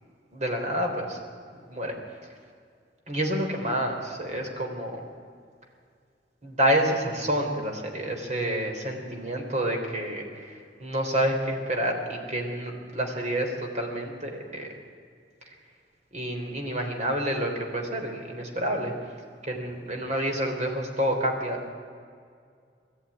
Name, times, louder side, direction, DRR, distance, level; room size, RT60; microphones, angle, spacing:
voice 1, 0.3-1.2 1.7-2.0 2.2-2.3 3.1-5.0 6.4-14.7 15.5-15.6 16.1-18.9 19.4-21.7, right 1 dB, 40° right, 2 dB, 3.7 m, -28 dB
21.5 x 14.0 x 9.9 m, 2.2 s
head